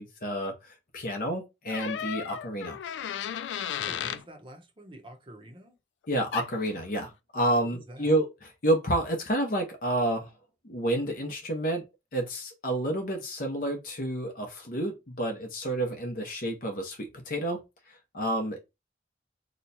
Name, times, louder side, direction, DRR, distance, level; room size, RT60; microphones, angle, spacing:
voice 1, 0.0-2.8 6.1-10.3 10.6-11.8 12.1-17.6 17.9-18.6, right 1 dB, 50° left, 0.8 m, -29 dB
sound 1, 1.7-4.2 6.3-6.5, left 9 dB, 85° left, 0.3 m, -34 dB
voice 2, 3.7-5.8 7.6-8.1, equal, 30° right, 0.8 m, -47 dB
3.0 x 2.2 x 3.9 m
head